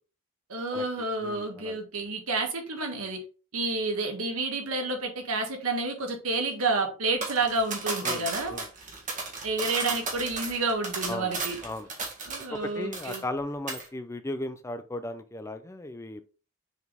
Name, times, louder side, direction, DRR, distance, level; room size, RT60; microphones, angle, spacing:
voice 1, 0.5-3.2 3.5-8.6 9.4-11.6 12.3-13.2, right 3 dB, 85° right, 1.6 m, -29 dB
voice 2, 1.2-1.8 8.0-8.7 11.1-11.3 11.6-11.9 12.5-16.2, left 1 dB, 15° left, 0.5 m, -36 dB
sound 1, 7.2-12.6 12.9-13.4 13.7-13.9, right 4 dB, 35° right, 1.8 m, -34 dB
7.1 x 4.2 x 3.5 m
head